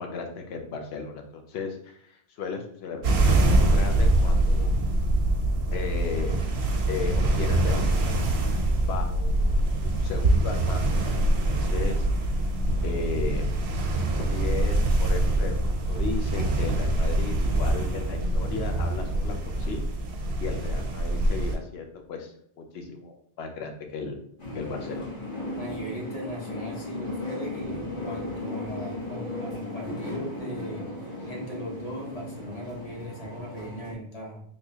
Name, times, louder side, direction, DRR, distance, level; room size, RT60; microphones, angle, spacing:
voice 1, 0.0-4.7 5.7-6.3 6.9-9.6 9.8-10.9 11.4-12.1 12.8-13.5 14.3-19.8 20.4-24.2 24.5-25.1, left 4 dB, 80° left, 4 dB, 0.9 m, -35 dB
sound 1, 3.0-21.6, right 1 dB, 85° right, 0.9 m, -24 dB
sound 2, 24.4-33.9, left 1 dB, 55° left, 1.3 m, -36 dB
voice 2, 25.6-30.9 31.3-34.4, equal, 40° left, -3 dB, 0.9 m, -38 dB
3.6 x 2.9 x 2.7 m, 0.64 s
omnidirectional pair, 1.1 m